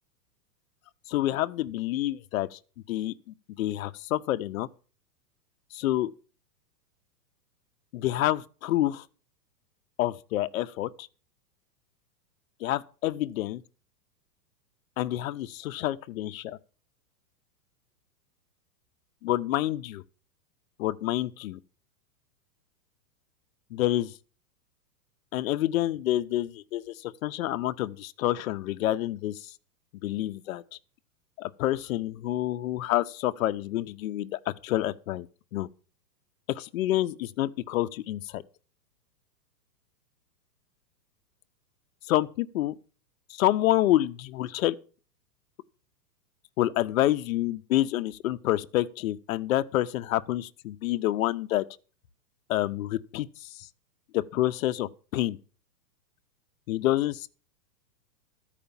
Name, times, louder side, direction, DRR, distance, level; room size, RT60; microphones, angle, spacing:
voice 1, 1.1-2.6 2.9-3.1 3.6-4.7 5.7-6.1 7.9-9.0 10.0-11.1 12.6-13.6 15.0-16.6 19.2-20.0 20.8-21.6 23.7-24.1 25.3-29.5 30.0-30.6 31.4-35.3 35.5-35.7 36.5-38.4 42.1-42.7 43.3-44.7 46.6-51.6 52.5-53.7 54.1-55.4 56.7-57.3, left 14 dB, 55° left, 0.7 m, -28 dB
13.0 x 5.0 x 7.0 m
hypercardioid pair, 155°, 49 cm